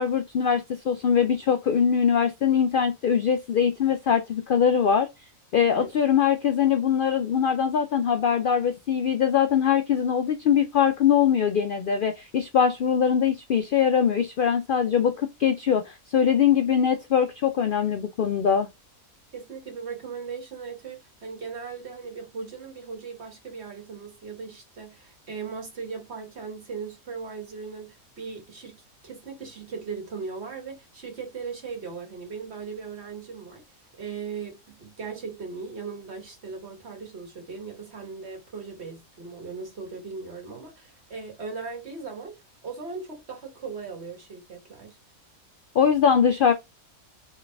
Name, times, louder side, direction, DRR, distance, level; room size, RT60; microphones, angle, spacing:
voice 1, 0.0-5.1 5.5-18.7 45.7-46.5, left 7 dB, 85° left, 0.4 m, -22 dB
voice 2, 19.3-28.8 29.0-33.6 33.9-45.0, right 5 dB, 50° right, 1.7 m, -38 dB
4.1 x 3.1 x 3.3 m
omnidirectional pair, 1.5 m